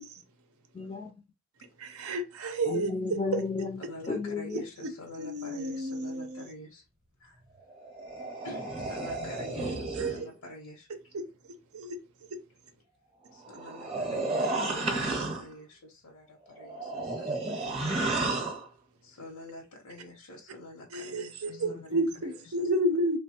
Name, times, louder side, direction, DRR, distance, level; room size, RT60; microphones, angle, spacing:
voice 1, 0.7-1.1 2.7-3.8 4.1-4.6 21.5-21.7, left 4 dB, 25° left, 0.3 m, -33 dB
voice 2, 1.8-2.9 3.3-3.4 4.5-4.9 5.2-6.4 9.9-10.1 11.1-11.2 11.7-12.0 20.9-23.2, right 1 dB, 85° right, 0.6 m, -31 dB
voice 3, 3.9-6.8 7.2-7.4 8.4-11.1 13.3-17.9 19.0-22.7, left 2 dB, 90° left, 0.8 m, -47 dB
sound 1, 7.7-10.3 13.4-15.5 16.5-18.7, right 2 dB, 30° right, 0.7 m, -32 dB
3.1 x 2.1 x 2.8 m
head